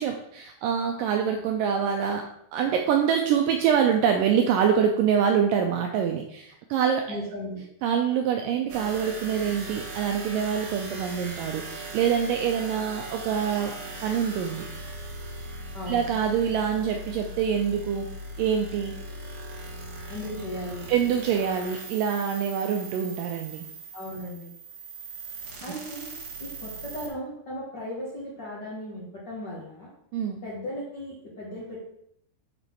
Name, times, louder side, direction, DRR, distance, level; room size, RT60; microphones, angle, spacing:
voice 1, 0.0-7.2 7.8-14.7 15.9-18.1 18.4-18.9 20.9-23.7 30.1-30.4, right 8 dB, 80° right, 4 dB, 2.0 m, -25 dB
voice 2, 7.1-7.6 15.7-16.0 20.1-20.9 23.9-24.5 25.6-26.1 26.4-29.9 30.4-31.8, left 1 dB, 80° left, -6 dB, 0.9 m, -36 dB
sound 1, 8.7-27.1, right 2 dB, 65° right, 2.0 m, -39 dB
6.4 x 4.2 x 4.5 m, 0.72 s
omnidirectional pair, 4.3 m